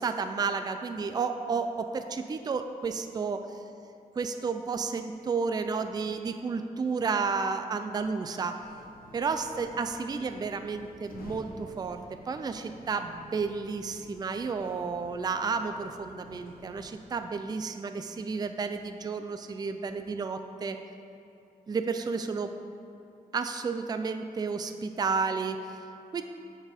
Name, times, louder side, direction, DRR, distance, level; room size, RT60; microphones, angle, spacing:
voice 1, 0.0-3.6 4.2-8.6 9.1-20.8 21.7-22.5 23.3-25.9 26.1-26.2, right 5 dB, 25° right, 8 dB, 0.3 m, -32 dB
sound 1, 8.5-16.9, left 1 dB, 80° left, 0.9 m, -51 dB
7.1 x 4.3 x 5.0 m, 2.7 s
wide cardioid pair, 95°, 15 cm